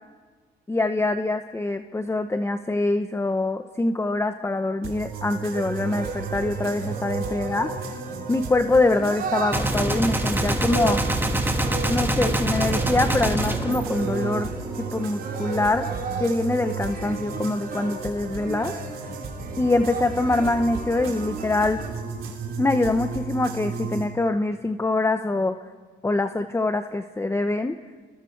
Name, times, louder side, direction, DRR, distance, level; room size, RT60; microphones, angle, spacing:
voice 1, 0.7-7.7 8.3-11.0 11.9-14.5 14.8-15.9 16.2-18.7 19.6-21.8 22.6-25.6 26.0-27.8, left 2 dB, 15° left, 8 dB, 0.8 m, -24 dB
sound 1, 4.8-24.0, right 5 dB, 85° right, 3.3 m, -34 dB
sound 2, 5.5-21.9, right 4 dB, 50° right, 4.1 m, -35 dB
Gunshot gunfire, 9.5-14.7, right 1 dB, 10° right, 2.0 m, -25 dB
28.0 x 21.0 x 4.6 m, 1.5 s
cardioid pair, 90°, 20 cm